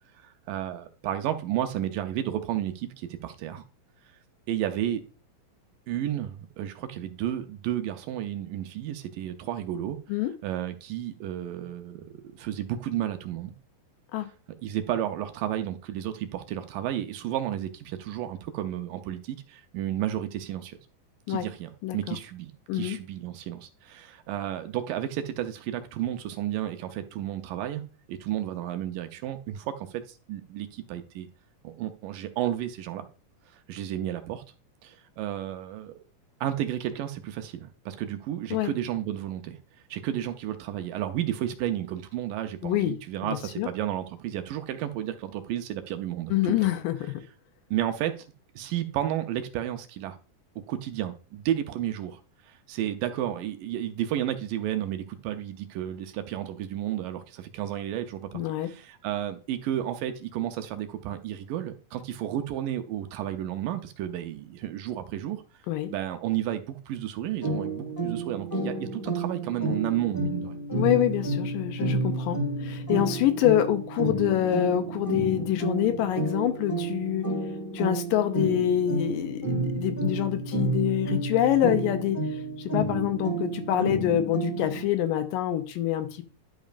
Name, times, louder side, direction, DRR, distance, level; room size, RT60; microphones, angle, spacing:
voice 1, 0.2-3.6 4.5-5.0 5.9-10.0 10.4-13.5 14.6-20.8 21.3-27.8 28.1-31.3 31.6-33.1 33.7-34.4 34.8-36.0 36.4-39.6 39.9-46.6 47.7-48.2 48.6-50.2 50.6-52.2 52.5-65.4 65.9-70.6, right 11 dB, 80° right, 2.2 m, -32 dB
voice 2, 21.8-22.2 22.7-23.0 38.5-38.7 42.6-43.0 43.2-43.7 46.3-47.2 58.3-58.7 65.7-65.9 70.7-77.3 77.7-86.2, left 12 dB, 80° left, 2.3 m, -26 dB
sound 1, 67.4-84.9, right 2 dB, 15° left, 0.7 m, -30 dB
11.5 x 5.2 x 2.5 m
omnidirectional pair, 4.1 m